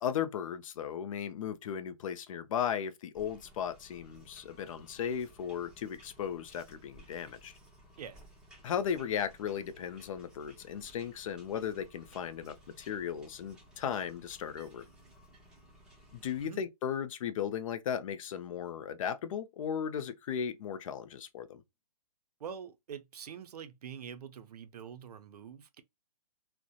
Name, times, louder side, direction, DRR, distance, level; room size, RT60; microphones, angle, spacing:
voice 1, 0.0-7.5 8.6-14.8 16.1-21.6, left 8 dB, 60° left, 0.4 m, -36 dB
sound 1, 3.1-16.4, right 1 dB, 5° right, 0.5 m, -58 dB
voice 2, 8.0-8.3 16.4-16.6 22.4-25.8, right 7 dB, 85° right, 0.4 m, -45 dB
2.7 x 2.0 x 2.2 m
hypercardioid pair, 150°, 20 cm